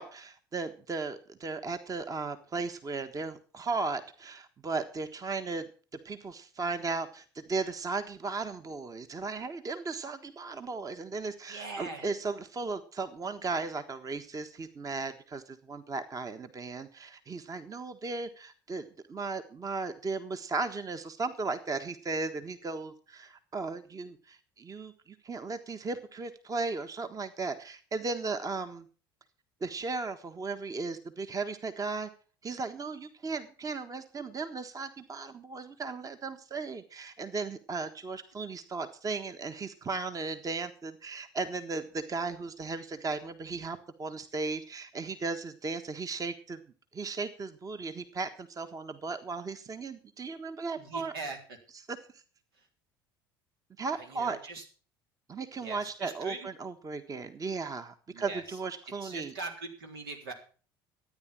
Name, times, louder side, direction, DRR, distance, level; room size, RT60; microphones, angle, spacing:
voice 1, 0.0-5.7 6.0-28.9 29.6-32.1 32.4-46.6 46.9-51.1 51.9-52.2 53.8-54.4 55.3-59.3, right 4 dB, 30° right, 9 dB, 1.4 m, -36 dB
voice 2, 11.5-12.1 50.8-51.6 53.9-54.6 55.6-56.5 58.1-58.6 59.0-60.3, right 3 dB, 80° right, 3 dB, 3.7 m, -41 dB
14.0 x 9.8 x 6.2 m, 0.39 s
hypercardioid pair, 65°, 12 cm